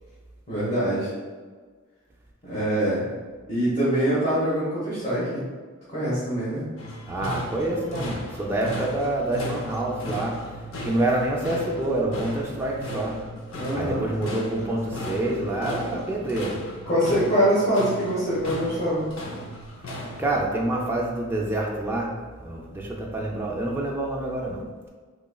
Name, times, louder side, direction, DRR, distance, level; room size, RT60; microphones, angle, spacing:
voice 1, 0.5-1.1 2.4-3.1 3.5-5.4 5.9-6.6 13.5-14.1 16.9-19.1, equal, 35° left, -11 dB, 1.1 m, -24 dB
sound 1, 6.8-20.4, left 1 dB, 75° left, 0.6 m, -36 dB
voice 2, 7.1-10.4 10.8-13.1 13.7-16.6 20.2-22.1 22.4-24.6, right 1 dB, 10° right, -3 dB, 0.3 m, -27 dB
4.0 x 3.0 x 2.2 m, 1.5 s
head